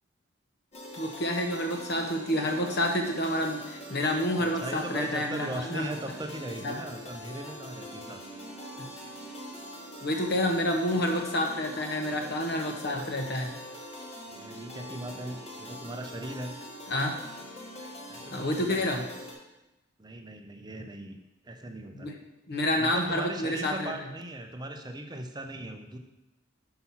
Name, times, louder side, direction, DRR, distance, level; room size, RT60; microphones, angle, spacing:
sound 1, 0.7-19.3, equal, 30° left, 1.2 m, -43 dB
voice 1, 0.9-5.9 6.6-6.8 8.8-8.9 10.0-13.6 16.9-17.2 18.3-19.0 21.9-22.2 22.5-23.9, left 1 dB, 50° left, 3 dB, 1.0 m, -29 dB
voice 2, 4.4-8.2 14.3-16.6 18.1-18.9 20.0-21.2 21.4-22.1 22.8-26.0, right 1 dB, 20° right, 5 dB, 0.6 m, -39 dB
6.0 x 5.8 x 5.6 m, 0.98 s
head